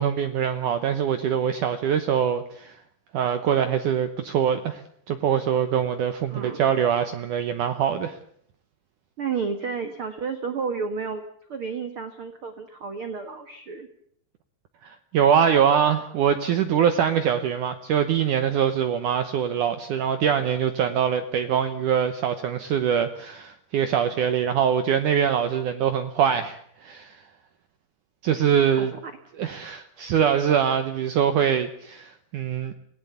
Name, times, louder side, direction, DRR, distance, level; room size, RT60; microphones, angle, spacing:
voice 1, 0.0-2.7 3.1-4.8 5.1-8.1 14.8-27.1 28.2-28.9 29.4-32.7, right 8 dB, 85° right, 9 dB, 1.7 m, -23 dB
voice 2, 6.3-6.6 9.2-11.2 11.5-13.9 28.8-29.1, right 5 dB, 70° right, 8 dB, 1.2 m, -31 dB
27.0 x 18.0 x 7.0 m, 0.65 s
omnidirectional pair, 5.2 m